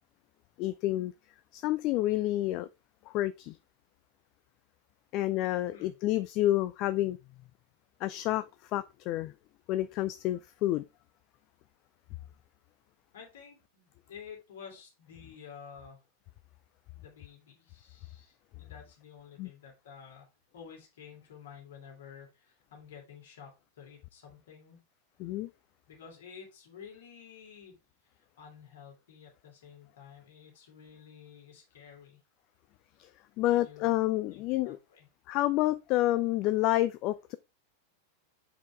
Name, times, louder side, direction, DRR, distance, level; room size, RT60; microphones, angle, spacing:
voice 1, 0.6-1.1 1.5-2.7 3.1-3.6 5.1-7.2 8.0-9.3 9.7-10.8 19.4-19.5 25.2-25.5 33.0-33.1 33.4-34.8 35.3-37.4, left 15 dB, 40° left, 0.4 m, -29 dB
voice 2, 13.1-16.0 16.9-20.3 20.5-24.8 25.9-27.7 28.1-32.2 33.6-33.9 34.3-35.1, left 7 dB, 60° left, 2.6 m, -51 dB
6.9 x 5.1 x 3.4 m
figure-of-eight pair, 90°, 0 cm